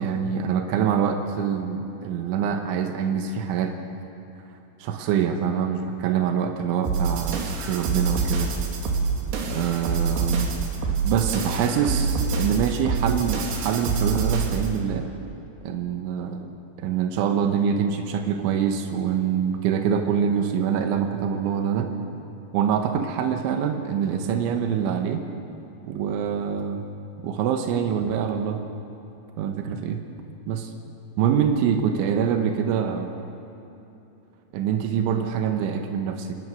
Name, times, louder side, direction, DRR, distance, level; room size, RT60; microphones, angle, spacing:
voice 1, 0.0-3.8 4.8-8.5 9.4-10.5 10.9-15.1 15.6-21.9 22.5-25.3 25.9-26.8 27.2-28.6 29.4-30.0 30.5-30.7 31.2-33.1 34.5-36.4, right 7 dB, 90° right, 4 dB, 3.6 m, -25 dB
sound 1, 6.8-14.8, right 5 dB, 65° right, 3.9 m, -26 dB
29.0 x 19.0 x 6.5 m, 3.0 s
omnidirectional pair, 5.4 m